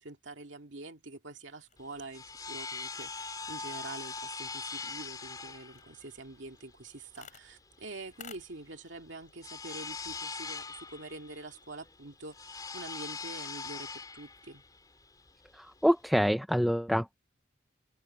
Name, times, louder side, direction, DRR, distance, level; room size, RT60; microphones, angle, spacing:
voice 1, 0.0-14.6, right 2 dB, 90° right, 2.3 m, -46 dB
sound 1, 1.4-14.8, left 6 dB, 40° left, 7.3 m, -60 dB
sound 2, 1.8-16.3, left 4 dB, 20° left, 5.0 m, -42 dB
voice 2, 15.6-17.2, equal, ahead, 0.5 m, -26 dB
head